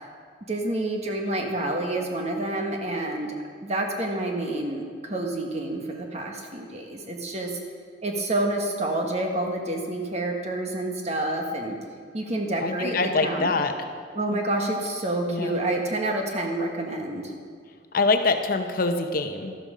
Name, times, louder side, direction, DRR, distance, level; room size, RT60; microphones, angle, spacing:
voice 1, 0.5-3.3 3.6-7.6 8.0-11.7 12.1-13.5 14.1-17.3, right 1 dB, 35° right, 2 dB, 1.5 m, -28 dB
voice 2, 12.6-13.9 14.3-14.4 15.3-15.6 17.9-19.6, left 3 dB, 50° left, 7 dB, 0.8 m, -25 dB
13.0 x 12.0 x 5.0 m, 2.1 s
head